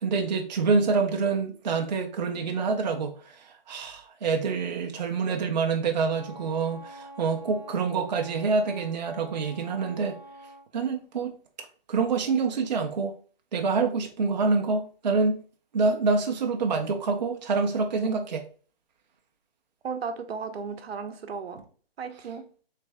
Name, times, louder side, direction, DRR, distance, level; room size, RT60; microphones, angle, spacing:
voice 1, 0.0-10.2 10.7-11.4 11.9-13.2 13.5-15.4 15.7-18.4, right 4 dB, 45° right, 0.5 m, -26 dB
Wind instrument woodwind instrument, 6.1-10.7, right 1 dB, 25° left, 0.4 m, -46 dB
voice 2, 19.8-21.7 22.0-22.5, right 5 dB, 80° right, 0.7 m, -35 dB
3.4 x 3.3 x 3.3 m
hypercardioid pair, 175°, 30 cm